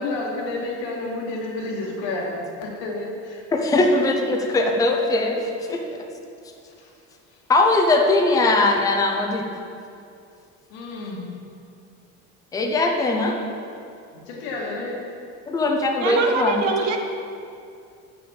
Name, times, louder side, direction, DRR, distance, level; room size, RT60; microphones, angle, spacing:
voice 1, 0.0-3.9 6.8-6.9 10.7-11.3 14.1-15.0, left 2 dB, 85° left, -2 dB, 2.4 m, -30 dB
voice 2, 3.5-5.4 5.7-6.0 7.5-9.4 12.5-13.4 15.5-16.5, left 2 dB, 10° left, 1 dB, 0.7 m, -20 dB
voice 3, 16.0-17.0, right 4 dB, 60° right, 4 dB, 1.1 m, -24 dB
8.9 x 5.9 x 7.3 m, 2.4 s
cardioid pair, 170°, 30 cm